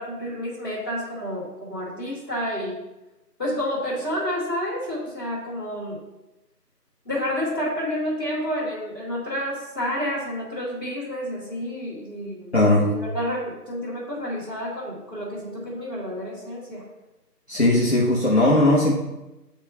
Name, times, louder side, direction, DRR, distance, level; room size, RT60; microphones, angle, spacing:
voice 1, 0.0-2.8 3.4-6.0 7.0-16.8, equal, 15° left, -14 dB, 1.7 m, -30 dB
voice 2, 12.5-12.9 17.5-18.9, left 1 dB, 45° left, -7 dB, 0.9 m, -18 dB
9.8 x 3.5 x 2.8 m, 0.98 s
figure-of-eight pair, 175°, 48 cm